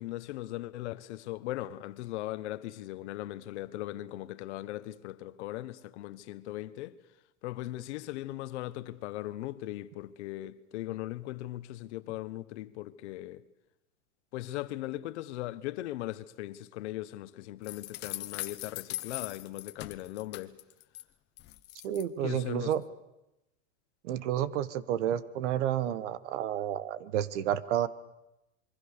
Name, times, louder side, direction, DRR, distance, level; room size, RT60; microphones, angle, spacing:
voice 1, 0.0-7.0 7.4-13.4 14.3-20.6 22.2-22.7, left 15 dB, 60° left, 1.2 m, -39 dB
sound 1, 17.6-21.0 21.4-22.0, left 16 dB, 25° left, 1.0 m, -40 dB
voice 2, 21.8-22.8 24.0-27.9, right 10 dB, 60° right, 1.4 m, -30 dB
27.0 x 23.5 x 6.8 m
supercardioid pair, 165°, 39 cm